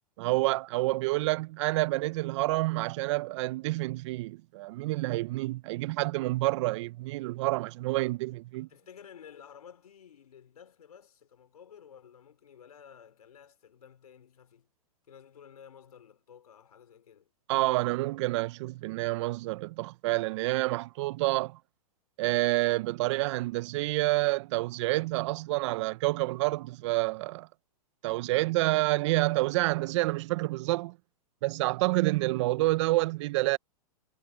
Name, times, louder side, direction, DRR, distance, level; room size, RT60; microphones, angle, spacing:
voice 1, 0.2-8.7 17.5-21.6 22.2-27.5 28.0-31.0 31.4-33.6, right 20 dB, 50° right, 0.6 m, -28 dB
voice 2, 8.5-14.7 15.1-17.3, left 8 dB, 85° left, 4.3 m, -53 dB
hypercardioid pair, 125°, 19 cm